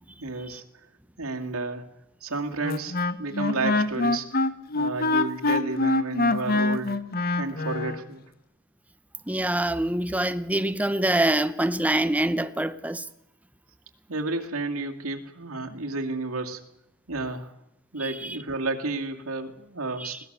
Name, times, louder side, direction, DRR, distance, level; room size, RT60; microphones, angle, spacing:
voice 1, 0.2-0.6 1.2-1.8 2.2-4.3 4.7-7.0 7.4-8.2 14.1-16.6 17.1-17.5 17.9-20.2, right 3 dB, 80° right, 2.2 m, -31 dB
Wind instrument woodwind instrument, 2.6-8.0, left 2 dB, 45° left, 1.0 m, -25 dB
voice 2, 9.3-13.1 18.0-18.4 20.0-20.2, right 1 dB, 5° right, 0.7 m, -25 dB
21.0 x 18.0 x 6.7 m
head